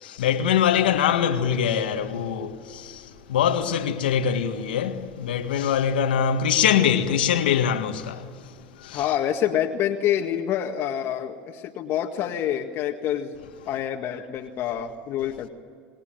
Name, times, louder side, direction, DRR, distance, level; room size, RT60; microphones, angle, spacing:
voice 1, 0.0-8.2 8.8-9.0, left 8 dB, 90° left, 1.8 m, -23 dB
voice 2, 8.9-13.4 13.7-15.5, left 10 dB, 55° left, 1.9 m, -27 dB
27.5 x 20.5 x 9.2 m
hypercardioid pair, 85°, 5 cm